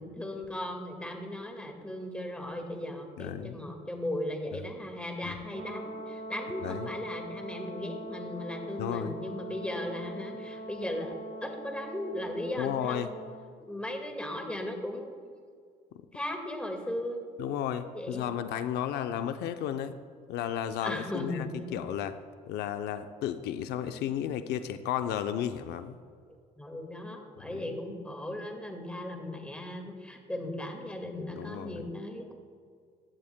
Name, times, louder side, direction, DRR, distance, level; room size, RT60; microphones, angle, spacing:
voice 1, 0.0-13.0 13.6-15.1 16.1-17.2 18.0-18.2 20.8-21.7 26.6-32.3, left 1 dB, 5° left, 3 dB, 1.8 m, -37 dB
voice 2, 3.2-3.6 5.2-5.4 6.6-6.9 8.8-9.1 12.6-13.1 17.4-20.0 20.3-22.1 22.5-25.9 27.5-27.7 31.3-31.8, left 10 dB, 80° left, 9 dB, 0.6 m, -33 dB
Brass instrument, 5.5-13.5, right 1 dB, 65° right, 1.2 m, -42 dB
16.0 x 11.0 x 2.2 m, 2.1 s
cardioid pair, 110°, 17 cm